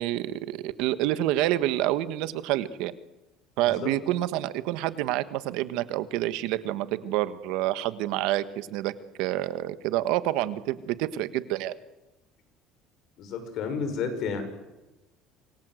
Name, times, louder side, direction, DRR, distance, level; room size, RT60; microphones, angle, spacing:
voice 1, 0.0-2.9 3.6-8.9 9.2-11.7, right 14 dB, 75° right, 13 dB, 1.4 m, -28 dB
voice 2, 3.6-3.9 13.2-14.4, left 6 dB, 55° left, 8 dB, 6.1 m, -31 dB
27.0 x 22.5 x 7.8 m, 1.0 s
cardioid pair, 135°, 0 cm